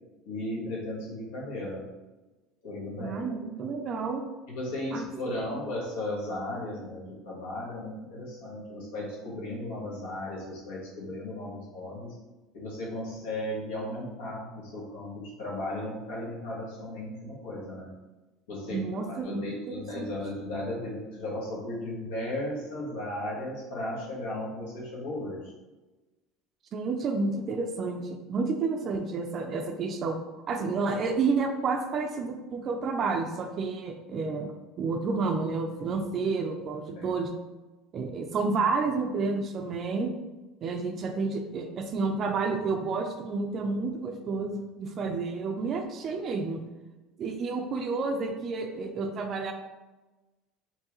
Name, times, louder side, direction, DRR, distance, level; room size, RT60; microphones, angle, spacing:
voice 1, 0.2-1.9 2.6-3.2 4.5-12.1 12.5-17.9 18.5-25.5 37.0-37.1, left 1 dB, 90° left, -5 dB, 1.4 m, -35 dB
voice 2, 3.0-4.2 4.9-5.0 18.7-20.1 26.7-30.2 30.5-37.3 37.9-40.1 40.6-46.6 47.2-49.5, right 4 dB, 40° right, 4 dB, 0.4 m, -30 dB
4.5 x 2.8 x 3.0 m, 1.1 s
supercardioid pair, 130°, 0 cm